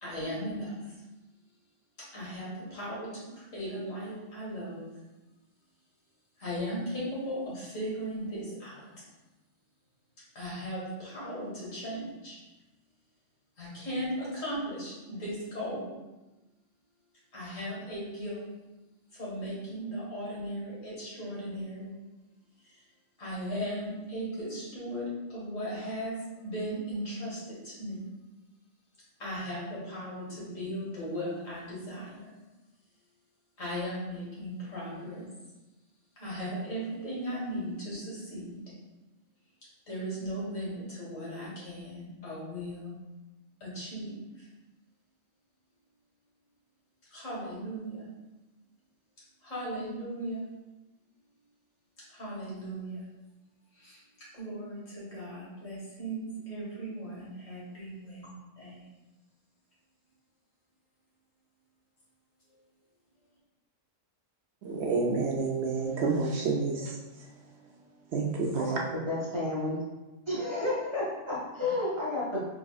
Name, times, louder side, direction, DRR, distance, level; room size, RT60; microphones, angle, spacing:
voice 1, 0.0-1.0 2.1-3.1 3.3-4.8 6.4-8.9 10.4-12.4 13.6-16.0 17.3-18.4 19.1-21.9 22.6-22.8 23.2-28.1 29.2-32.4 33.6-35.3 36.2-38.6 39.9-42.9 43.6-44.5 47.1-48.1 49.4-50.4 52.1-53.0 53.7-54.0 54.3-58.3 58.6-58.9, equal, 80° left, 2.1 m, -37 dB
voice 2, 64.6-67.0 68.1-68.8, right 4 dB, 65° right, 0.8 m, -29 dB
voice 3, 68.5-69.8 70.3-72.4, left 2 dB, 25° right, 0.9 m, -31 dB
4.7 x 3.6 x 2.4 m
omnidirectional pair, 1.3 m